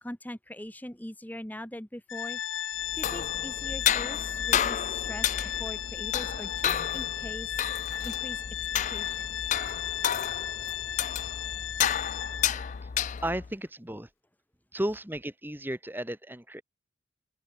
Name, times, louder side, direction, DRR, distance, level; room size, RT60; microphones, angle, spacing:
voice 1, 0.0-2.4 3.0-7.5 8.0-8.4 8.7-9.4, left 1 dB, 10° left, 1.3 m, -42 dB
Organ, 2.1-12.7, left 11 dB, 80° left, 1.2 m, -35 dB
sound 1, 2.8-13.5, left 9 dB, 40° left, 0.4 m, -31 dB
voice 2, 13.2-14.1 14.7-16.6, right 1 dB, 10° right, 1.9 m, -34 dB
open air
head